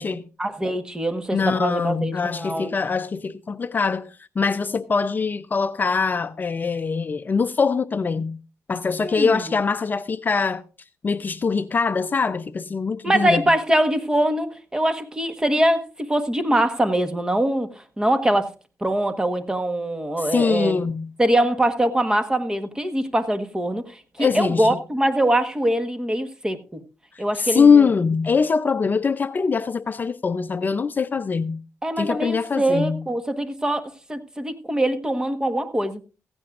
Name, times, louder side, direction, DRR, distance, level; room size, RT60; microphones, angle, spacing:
voice 1, 0.4-2.7 9.0-9.5 13.0-18.5 18.8-20.8 21.2-26.6 27.2-27.7 31.8-36.0, right 1 dB, 15° right, 1.3 m, -23 dB
voice 2, 1.3-8.4 8.7-10.6 11.0-13.5 20.2-21.1 24.2-24.8 27.3-31.6 32.0-33.0, left 5 dB, 35° left, 0.5 m, -22 dB
16.0 x 15.5 x 2.5 m
cardioid pair, 110°, 5 cm